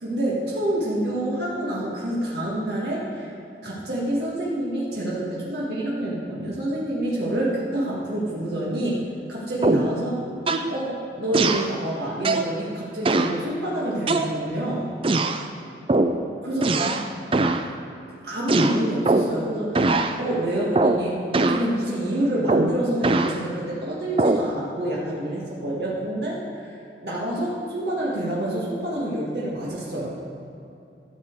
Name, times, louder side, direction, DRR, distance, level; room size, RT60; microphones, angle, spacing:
voice 1, 0.0-3.3 3.6-9.0 9.3-10.2 10.7-14.9 16.4-17.0 18.2-26.4 26.7-30.1, right 1 dB, 70° right, -6 dB, 1.9 m, -27 dB
sound 1, 9.6-10.0 10.5-10.7 11.3-11.7 12.2-12.5 13.0-13.4 14.1-14.6 15.0-15.4 15.9-16.2 16.6-17.1 17.3-17.7 18.5-19.4 19.7-20.2 20.7-21.1 21.3-21.7 22.5-23.4 24.2-24.5, right 2 dB, 30° right, 0.4 m, -21 dB
13.0 x 7.5 x 4.7 m, 2.8 s
head